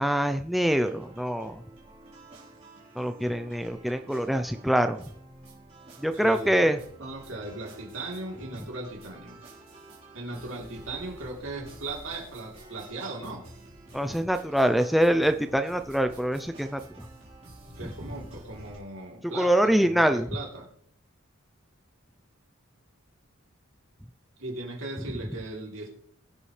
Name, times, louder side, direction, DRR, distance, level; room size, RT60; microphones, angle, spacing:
voice 1, 0.0-1.6 3.0-5.0 6.0-6.8 13.9-16.8 19.3-20.3, equal, ahead, 8 dB, 0.5 m, -24 dB
sound 1, 0.7-18.8, right 2 dB, 30° right, 4.1 m, -50 dB
voice 2, 6.1-6.7 7.0-9.4 10.1-13.5 17.8-20.7 24.4-25.9, right 2 dB, 70° right, -1 dB, 3.4 m, -38 dB
21.5 x 8.2 x 3.3 m, 0.66 s
head